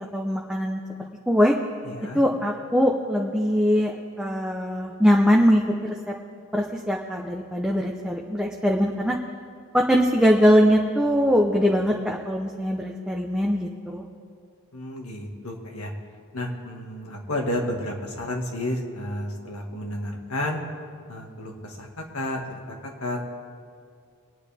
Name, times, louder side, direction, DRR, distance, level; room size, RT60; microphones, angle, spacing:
voice 1, 0.1-0.8 1.3-1.6 2.1-6.1 6.5-9.2 9.7-14.1, equal, 5° right, 0 dB, 0.6 m, -22 dB
voice 2, 1.8-2.2 14.7-15.9 16.3-20.6 21.1-21.9 22.1-22.4 22.7-22.8 23.0-23.2, left 1 dB, 85° left, 1 dB, 1.9 m, -31 dB
23.5 x 9.5 x 3.5 m, 2.3 s
head